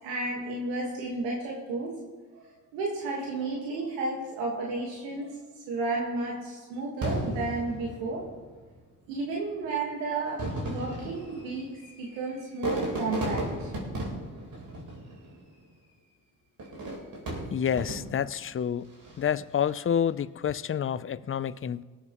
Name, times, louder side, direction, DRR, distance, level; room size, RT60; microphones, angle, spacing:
voice 1, 0.0-2.0 2.3-5.3 5.7-8.3 9.1-11.7 12.0-13.7, right 2 dB, 85° right, -2 dB, 1.8 m, -32 dB
Fireworks, 7.0-8.6 9.5-9.6 10.2-15.5 16.6-18.4 18.9-19.4, right 1 dB, 60° right, 4.0 m, -35 dB
voice 2, 17.5-18.9 19.2-21.8, left 8 dB, 35° left, 16 dB, 0.6 m, -28 dB
24.0 x 8.2 x 3.1 m, 1.4 s
hypercardioid pair, 45°, 39 cm